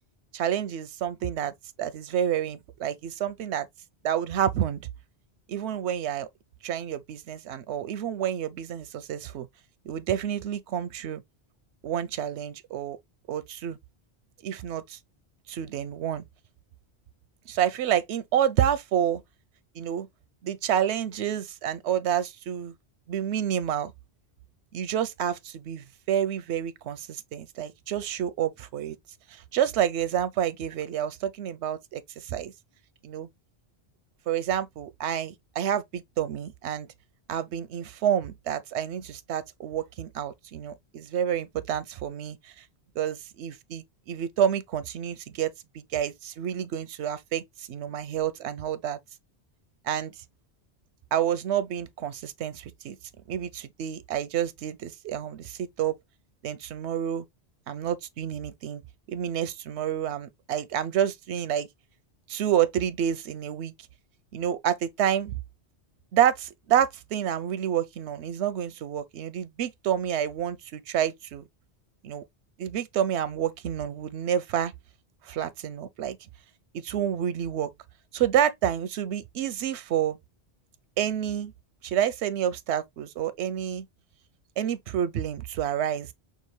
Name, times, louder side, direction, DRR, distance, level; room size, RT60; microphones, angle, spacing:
voice 1, 0.3-1.5 1.8-3.7 4.0-4.8 5.5-6.3 6.6-9.5 9.9-11.2 11.8-13.0 13.3-13.8 14.4-15.0 15.5-16.2 17.5-19.2 19.7-20.1 20.4-22.7 23.1-23.9 24.7-29.0 29.3-32.5 33.0-33.3 34.3-36.9 37.3-42.5 43.0-49.0 49.8-50.1 51.1-53.0 53.3-55.9 56.4-57.2 57.7-58.8 59.1-61.7 62.3-63.7 64.3-65.4 66.1-71.4 72.0-72.2 72.6-74.7 75.2-76.2 76.7-77.7 78.1-80.2 81.0-81.5 81.8-83.8 84.6-86.1, right 9 dB, 90° right, 0.9 m, -29 dB
5.7 x 2.5 x 3.1 m
omnidirectional pair, 1.1 m